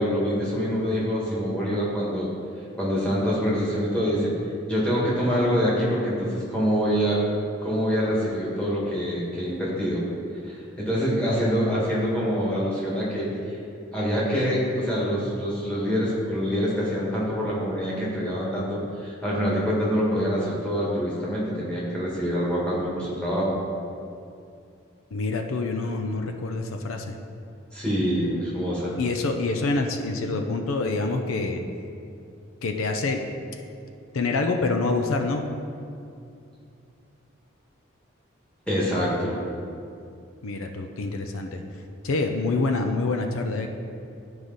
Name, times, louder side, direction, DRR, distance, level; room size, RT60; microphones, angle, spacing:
voice 1, 0.0-2.3 2.8-4.3 4.7-7.2 7.6-10.0 10.4-13.3 13.9-23.6 27.7-28.9 38.7-39.4, equal, 5° left, -7 dB, 1.7 m, -25 dB
voice 2, 25.1-27.2 29.0-31.6 32.6-33.2 34.1-35.4 40.4-41.6 42.0-43.7, left 3 dB, 80° left, 5 dB, 0.5 m, -26 dB
11.0 x 4.8 x 4.0 m, 2.5 s
head